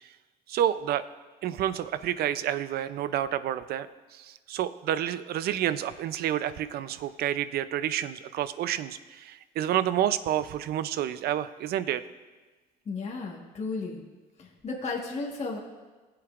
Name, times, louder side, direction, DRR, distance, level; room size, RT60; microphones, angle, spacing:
voice 1, 0.5-1.0 1.4-3.9 4.1-12.0, right 11 dB, 70° right, 13 dB, 0.5 m, -29 dB
voice 2, 12.8-14.0 14.4-15.6, left 3 dB, 40° left, -3 dB, 1.5 m, -34 dB
18.5 x 7.8 x 2.5 m, 1.3 s
cardioid pair, 110°, 17 cm